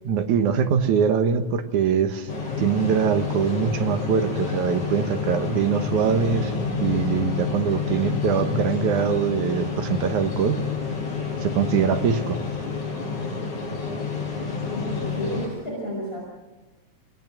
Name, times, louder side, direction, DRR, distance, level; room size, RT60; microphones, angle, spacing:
voice 1, 0.1-2.3 2.6-6.5 6.8-10.6 11.4-12.4, right 7 dB, 90° right, 8 dB, 2.8 m, -23 dB
sound 1, 2.3-15.5, left 5 dB, 80° left, 6.1 m, -29 dB
voice 2, 14.4-16.2, equal, 20° left, -3 dB, 6.3 m, -32 dB
28.0 x 18.5 x 7.5 m, 1.1 s
omnidirectional pair, 3.4 m